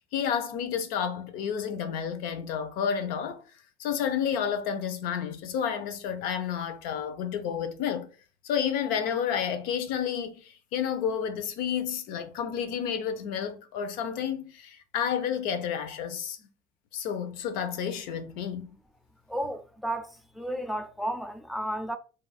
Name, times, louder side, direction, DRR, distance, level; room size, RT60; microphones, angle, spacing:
voice 1, 0.1-3.4 3.8-8.1 8.4-16.5 16.9-18.7, left 8 dB, 75° left, 0.6 m, -30 dB
voice 2, 19.3-20.1 20.4-22.0, right 1 dB, ahead, 0.3 m, -32 dB
2.5 x 2.3 x 4.0 m
cardioid pair, 145°, 15 cm